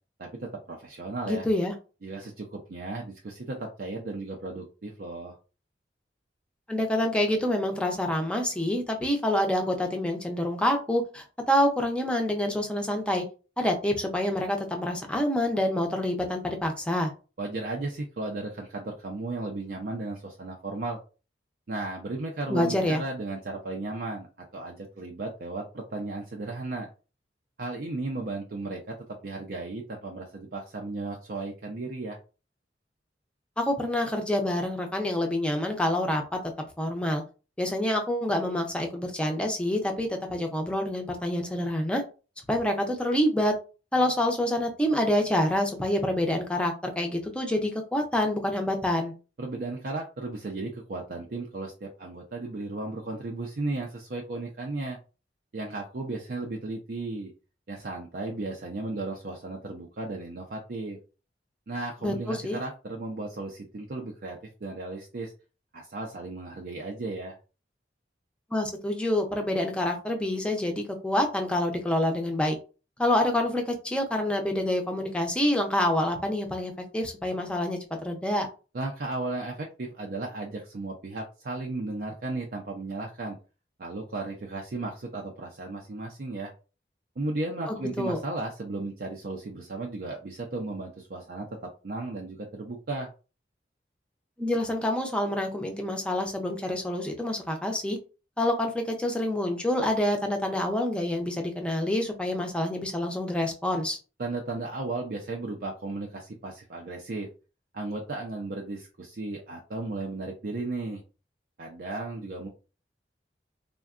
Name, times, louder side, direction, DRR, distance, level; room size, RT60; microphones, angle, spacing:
voice 1, 0.2-1.4 2.0-5.4 17.4-21.0 21.7-24.3 24.5-26.9 27.6-29.0 29.2-32.2 49.4-55.0 55.5-57.3 57.7-61.0 61.7-65.3 65.7-67.4 78.7-83.4 83.8-86.5 87.2-91.5 91.8-93.1 104.2-107.3 107.7-111.0 111.6-112.5, right 2 dB, 55° right, 0 dB, 0.5 m, -35 dB
voice 2, 1.2-1.7 6.7-13.2 13.6-17.1 22.5-23.0 33.6-36.4 36.8-37.2 37.6-42.0 42.5-43.5 43.9-49.1 62.0-62.6 68.5-72.6 73.0-78.5 87.7-88.2 94.4-98.0 98.4-104.0, left 1 dB, 5° left, 3 dB, 0.5 m, -27 dB
3.5 x 2.2 x 2.4 m, 0.33 s
head